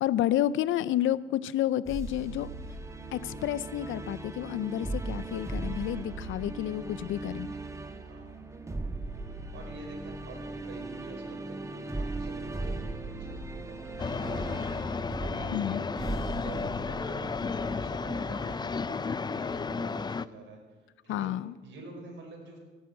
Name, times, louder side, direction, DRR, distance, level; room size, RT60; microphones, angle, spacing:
voice 1, 0.0-2.5 3.1-7.5 15.5-15.8 21.1-21.5, left 12 dB, 80° left, 17 dB, 0.6 m, -30 dB
sound 1, 1.9-18.6, right 2 dB, 15° right, 1.3 m, -38 dB
voice 2, 8.0-8.4 9.2-20.6 21.0-21.3 21.6-22.6, right 2 dB, 70° right, 1 dB, 4.8 m, -47 dB
sound 2, 14.0-20.3, left 5 dB, 20° left, 0.4 m, -33 dB
16.5 x 9.3 x 7.8 m, 1.3 s
cardioid pair, 90°, 20 cm